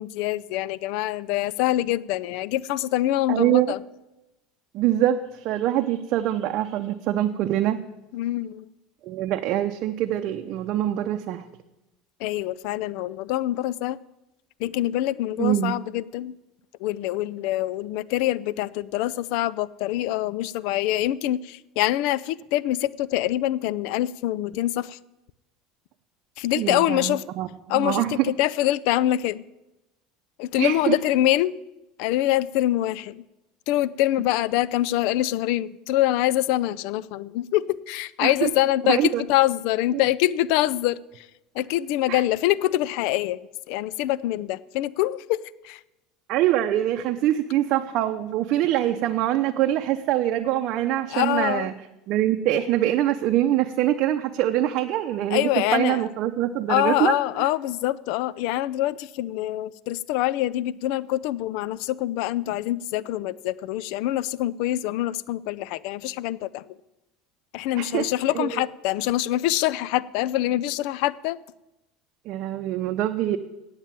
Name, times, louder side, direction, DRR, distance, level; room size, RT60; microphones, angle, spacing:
voice 1, 0.0-3.8 8.1-8.7 12.2-14.0 14.6-16.4 16.8-25.0 26.4-27.2 27.7-29.4 30.4-31.6 32.0-33.2 33.7-41.3 41.5-43.4 43.7-45.8 51.1-51.7 55.3-56.0 56.7-66.8 67.5-71.4, left 14 dB, 70° left, 20 dB, 0.4 m, -25 dB
voice 2, 3.3-3.7 4.7-7.8 9.0-11.4 15.4-15.7 26.5-27.5 27.8-28.1 30.6-31.0 38.2-38.5 38.8-39.2 42.1-42.2 46.3-51.7 52.1-57.1 67.7-68.0 68.4-68.5 72.3-73.4, right 13 dB, 60° right, 6 dB, 0.6 m, -24 dB
9.1 x 8.1 x 7.4 m, 0.96 s
hypercardioid pair, 85°, 0 cm